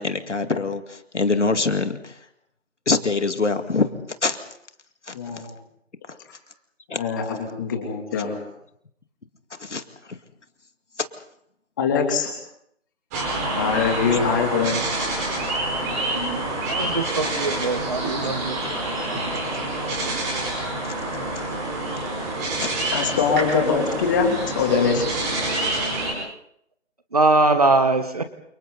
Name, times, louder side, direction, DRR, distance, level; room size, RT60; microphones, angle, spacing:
voice 1, 0.0-2.1 2.9-3.9 4.2-4.4 5.1-5.2 6.9-7.0 9.6-9.8 18.6-18.7 20.0-20.1 20.8-20.9 22.6-22.7, left 3 dB, 65° left, 8 dB, 2.3 m, -24 dB
voice 2, 5.1-5.5 6.9-8.4 11.8-12.3 13.5-14.8 22.9-25.1, left 5 dB, 15° left, 3 dB, 2.9 m, -23 dB
sound 1, 13.1-26.1, right 2 dB, 15° right, 5.0 m, -27 dB
voice 3, 16.7-18.6 27.1-28.2, right 2 dB, 30° right, 10 dB, 1.2 m, -21 dB
29.5 x 29.0 x 4.1 m, 0.72 s
figure-of-eight pair, 165°, 38 cm